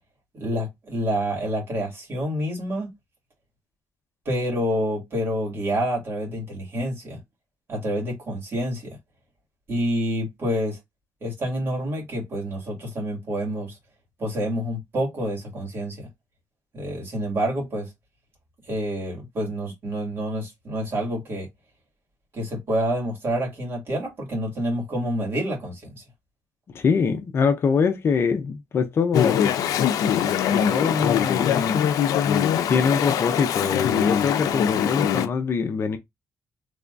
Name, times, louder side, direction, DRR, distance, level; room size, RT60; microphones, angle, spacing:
voice 1, 0.3-2.9 4.3-7.2 7.7-9.0 9.7-10.8 11.2-13.8 14.2-16.1 16.7-17.9 18.7-21.5 22.3-26.0, equal, 40° right, 2.3 m, -28 dB
voice 2, 26.7-29.5 30.7-31.9 32.7-36.0, left 5 dB, 45° left, 0.6 m, -23 dB
Chatter / Stream, 29.1-35.3, left 9 dB, 90° left, 0.5 m, -22 dB
3.4 x 3.3 x 2.5 m
cardioid pair, 135°, 6 cm